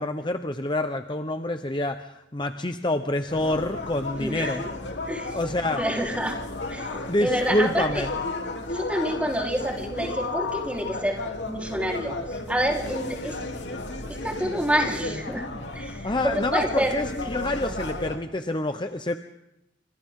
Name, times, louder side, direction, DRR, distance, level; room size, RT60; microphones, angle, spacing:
voice 1, 0.0-4.6 5.3-5.8 7.1-8.1 16.0-19.2, left 1 dB, 25° left, 7 dB, 1.0 m, -27 dB
sound 1, 3.3-18.2, left 2 dB, 70° left, 3.3 m, -33 dB
voice 2, 4.2-4.6 5.1-5.4 5.7-6.4 6.7-6.9 7.2-8.0 8.7-11.2 11.5-13.4 14.1-15.4 15.7-16.9, equal, 5° right, 0 dB, 4.1 m, -27 dB
29.0 x 27.0 x 3.8 m, 0.86 s
head